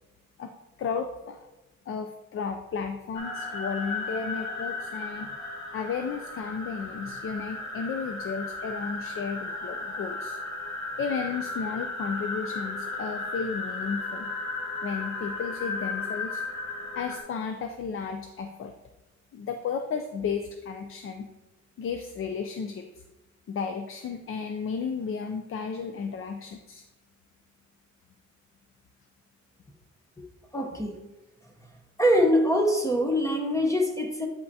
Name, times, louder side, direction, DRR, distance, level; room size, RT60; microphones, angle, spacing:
voice 1, 0.8-1.4 1.9-5.3 5.7-10.4 11.0-14.3 14.8-16.4 17.0-18.7 19.3-21.3 21.8-23.0 23.5-26.8, left 5 dB, 45° left, 6 dB, 0.4 m, -33 dB
sound 1, 3.1-17.2, left 3 dB, 60° left, 1.7 m, -35 dB
voice 2, 30.5-31.0 32.0-34.3, equal, 10° left, 3 dB, 0.7 m, -23 dB
8.6 x 5.5 x 2.7 m, 1.1 s
wide cardioid pair, 160°, 30 cm